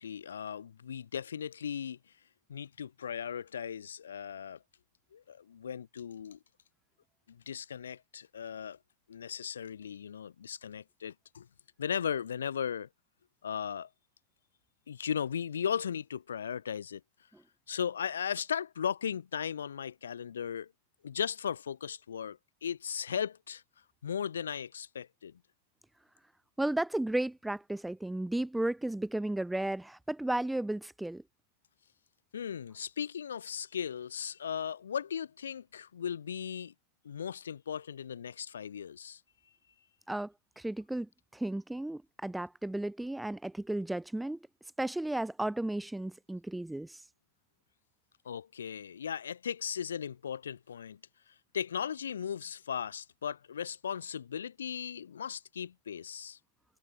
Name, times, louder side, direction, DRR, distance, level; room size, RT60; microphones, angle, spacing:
voice 1, 0.0-2.0 2.5-4.6 5.1-6.4 7.3-8.8 9.1-11.5 11.8-12.9 13.4-13.9 14.9-17.0 17.7-20.7 21.0-23.6 24.0-25.4 32.3-36.7 37.0-39.2 48.2-51.0 51.5-56.4, left 8 dB, 65° left, 3.1 m, -37 dB
voice 2, 26.6-31.2 40.1-44.4 44.8-47.0, right 1 dB, 5° right, 0.5 m, -34 dB
figure-of-eight pair, 90°, 0 cm